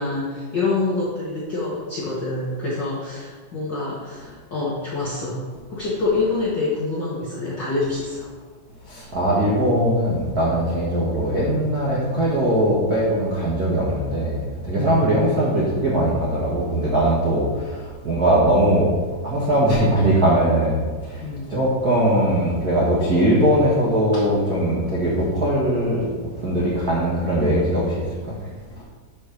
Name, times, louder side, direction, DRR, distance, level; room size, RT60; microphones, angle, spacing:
voice 1, 0.0-5.4 5.7-8.3 14.7-15.0 17.2-17.3 21.2-21.6, left 3 dB, 70° left, -7 dB, 1.0 m, -26 dB
voice 2, 8.9-18.9 19.2-21.2 21.5-26.1 26.4-27.9, right 1 dB, 85° right, -7 dB, 0.8 m, -20 dB
6.3 x 5.2 x 6.4 m, 1.5 s
omnidirectional pair, 4.3 m